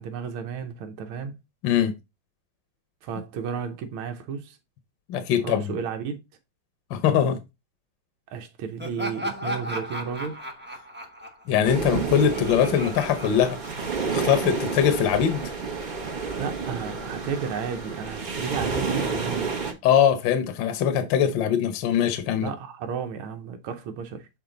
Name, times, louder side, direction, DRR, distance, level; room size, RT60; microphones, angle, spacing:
voice 1, 0.0-1.3 3.0-4.6 5.4-6.2 8.3-10.4 16.4-19.6 22.4-24.3, right 6 dB, 85° right, 1.7 m, -33 dB
voice 2, 5.1-5.6 6.9-7.4 11.5-13.6 14.1-15.4 19.8-22.5, left 9 dB, 70° left, 1.5 m, -22 dB
Laughter, 8.8-14.2, equal, 10° right, 0.6 m, -35 dB
sound 1, 11.6-19.7, right 4 dB, 30° right, 0.9 m, -30 dB
7.0 x 4.4 x 3.8 m
omnidirectional pair, 2.2 m